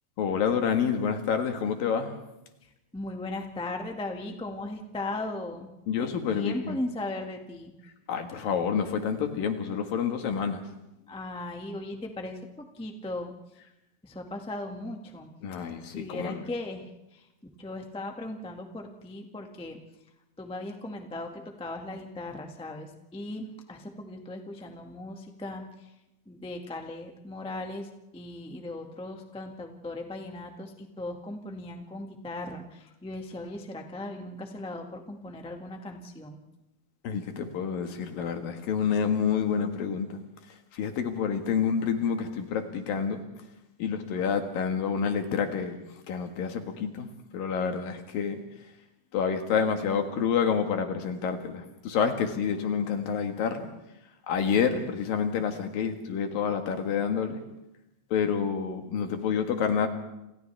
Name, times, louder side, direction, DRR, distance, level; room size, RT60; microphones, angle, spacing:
voice 1, 0.2-2.1 5.9-6.8 8.1-10.6 15.4-16.4 37.0-40.2 40.7-43.2 43.8-45.8 46.1-47.1 47.3-48.4 49.1-53.7 54.3-57.4 58.1-59.9, left 7 dB, 70° left, 5 dB, 3.4 m, -28 dB
voice 2, 2.6-5.7 6.0-7.7 11.1-13.3 14.0-15.3 15.9-17.3 17.6-19.8 20.4-25.9 26.2-36.4, left 2 dB, 10° left, 2 dB, 0.3 m, -38 dB
30.0 x 27.5 x 3.5 m, 0.91 s
omnidirectional pair, 4.3 m